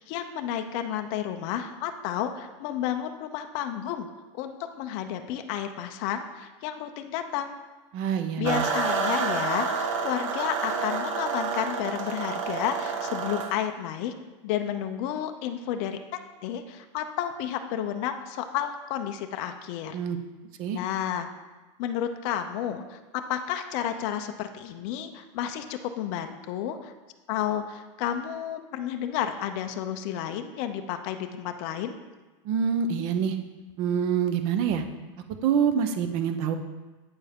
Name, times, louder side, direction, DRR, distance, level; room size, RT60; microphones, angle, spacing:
voice 1, 0.0-4.1 4.3-7.6 8.4-14.1 14.4-16.0 16.4-20.0 20.7-21.3 21.8-26.9 27.3-32.0, left 10 dB, 30° left, 7 dB, 0.5 m, -31 dB
voice 2, 7.9-8.6 19.9-20.2 20.6-20.8 32.4-33.4 33.8-34.8 35.4-36.6, right 7 dB, 30° right, 8 dB, 0.6 m, -26 dB
sound 1, 8.4-13.5, right 5 dB, 85° right, 1.3 m, -29 dB
8.6 x 6.8 x 3.5 m, 1.2 s
supercardioid pair, 175°, 16 cm